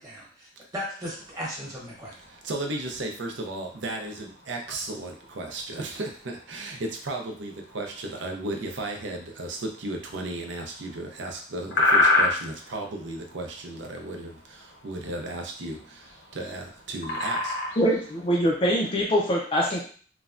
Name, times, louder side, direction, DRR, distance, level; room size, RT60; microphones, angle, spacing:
voice 1, 0.0-2.1, equal, 20° right, -5 dB, 1.0 m, -36 dB
sound 1, 1.1-18.3, left 2 dB, 60° left, 0.7 m, -32 dB
voice 2, 2.4-17.5, right 2 dB, 75° right, 2 dB, 0.6 m, -35 dB
voice 3, 17.8-19.8, equal, 30° left, -3 dB, 0.4 m, -23 dB
3.1 x 2.2 x 2.4 m, 0.43 s
head